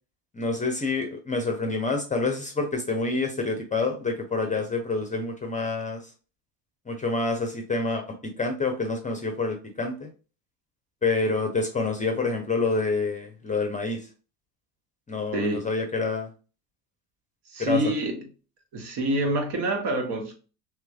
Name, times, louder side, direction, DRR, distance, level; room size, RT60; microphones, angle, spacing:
voice 1, 0.3-6.0 6.9-8.0 8.4-10.1 11.0-14.1 15.1-16.3 17.6-17.9, left 3 dB, 15° left, 0.7 m, -27 dB
voice 2, 17.5-18.3 18.7-20.3, right 1 dB, 55° right, 1.2 m, -26 dB
3.1 x 3.0 x 2.3 m
hypercardioid pair, 70°, 50 cm